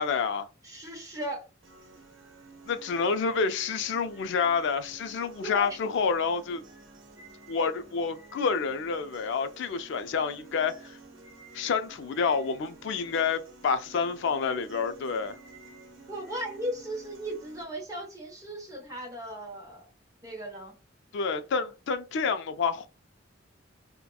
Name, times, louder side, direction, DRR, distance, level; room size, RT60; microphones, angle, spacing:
voice 1, 0.0-0.5 2.7-6.6 7.5-11.0 11.5-15.4 21.1-22.9, left 5 dB, 65° left, 0.4 m, -28 dB
voice 2, 0.6-1.5 5.4-5.7 16.1-19.9 20.2-20.7, equal, 20° right, 0.8 m, -36 dB
sound 1, 1.6-17.6, right 3 dB, 85° right, 0.7 m, -51 dB
2.8 x 2.1 x 2.2 m
head